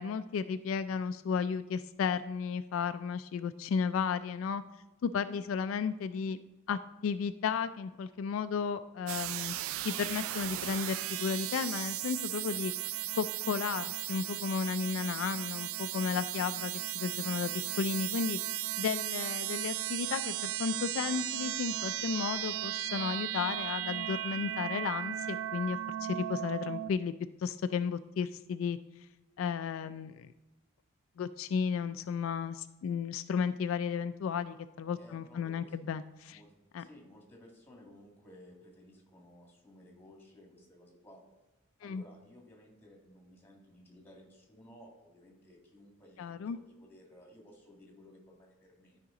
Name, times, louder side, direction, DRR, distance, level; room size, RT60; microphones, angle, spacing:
voice 1, 0.0-4.6 5.0-6.4 6.7-9.5 9.8-12.7 13.1-17.5 17.8-18.4 18.8-27.1 27.4-28.8 29.4-30.3 31.2-36.4 36.7-36.9 41.8-42.0 46.2-46.6, left 6 dB, 70° left, 12 dB, 0.3 m, -34 dB
sound 1, 9.1-26.9, right 13 dB, 80° right, 0.3 m, -36 dB
voice 2, 34.9-35.9 36.3-36.5 36.8-41.2 41.8-49.0, left 1 dB, 10° left, 0 dB, 1.9 m, -56 dB
12.5 x 5.0 x 3.7 m, 1.1 s
head